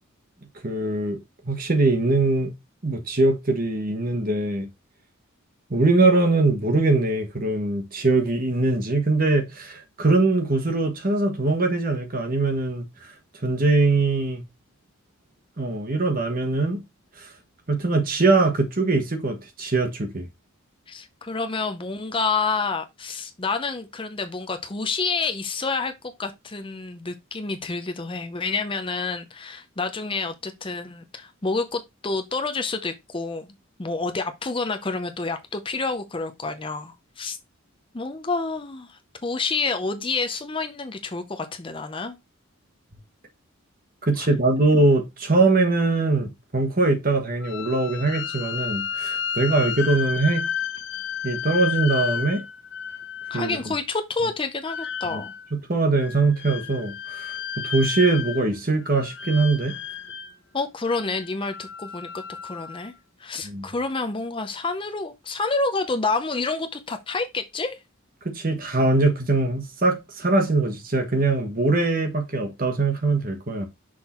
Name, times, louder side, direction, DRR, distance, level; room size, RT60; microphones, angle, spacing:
voice 1, 0.6-1.2 1.4-2.5 2.8-4.7 5.7-12.8 13.4-14.4 15.6-16.8 17.7-20.3 44.0-50.4 51.2-52.4 53.3-53.7 55.1-55.2 55.5-59.8 63.4-63.7 68.2-73.7, right 3 dB, 40° right, 1.3 m, -22 dB
voice 2, 20.9-25.9 26.2-33.5 33.8-37.4 37.9-42.2 44.2-44.3 53.3-55.3 60.5-62.9 63.2-67.8, left 3 dB, 25° left, 0.6 m, -28 dB
sound 1, 47.4-53.6 54.7-55.5 56.0-58.6 58.8-60.4 60.9-62.9, left 7 dB, 55° left, 1.0 m, -32 dB
6.2 x 3.8 x 4.3 m
head